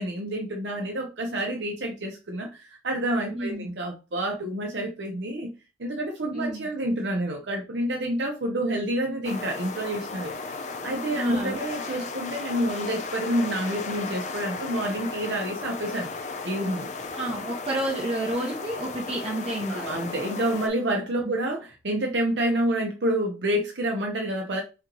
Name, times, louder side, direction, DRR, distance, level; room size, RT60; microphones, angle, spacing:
voice 1, 0.0-5.5 5.8-10.6 10.8-16.1 16.4-16.9 19.7-24.6, right 1 dB, 85° right, 0.9 m, -28 dB
voice 2, 3.3-3.7 6.3-6.7 11.1-11.6 17.1-19.9 21.2-21.3, right 1 dB, 35° right, 0.9 m, -30 dB
sound 1, 9.2-20.7, left 3 dB, 40° left, 0.5 m, -35 dB
4.2 x 3.0 x 3.8 m
head